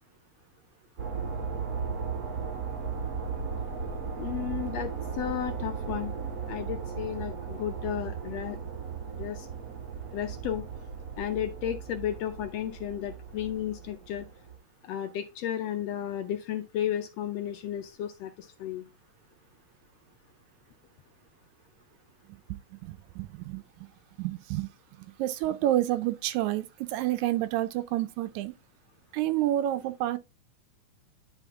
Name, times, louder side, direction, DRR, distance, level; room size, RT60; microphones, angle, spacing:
sound 1, 1.0-14.6, right 6 dB, 55° right, 1.0 m, -36 dB
voice 1, 4.2-6.1 6.5-8.6 9.1-9.5 10.1-10.6 11.2-14.3 14.8-18.9, left 10 dB, 75° left, 1.6 m, -33 dB
voice 2, 22.5-23.9 24.2-28.5 29.1-30.2, right 14 dB, 80° right, 1.9 m, -29 dB
9.9 x 4.2 x 3.5 m
omnidirectional pair, 3.4 m